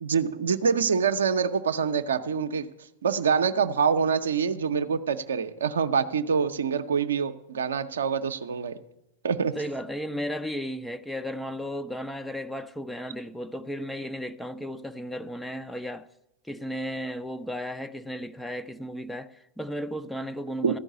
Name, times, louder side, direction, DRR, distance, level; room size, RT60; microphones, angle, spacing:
voice 1, 0.0-2.7 3.0-8.8 9.2-9.5 20.6-20.7, right 6 dB, 65° right, 0.6 m, -25 dB
voice 2, 9.6-16.1 16.4-20.8, equal, 5° left, 0.4 m, -34 dB
14.0 x 5.3 x 8.2 m
figure-of-eight pair, 90°, 0 cm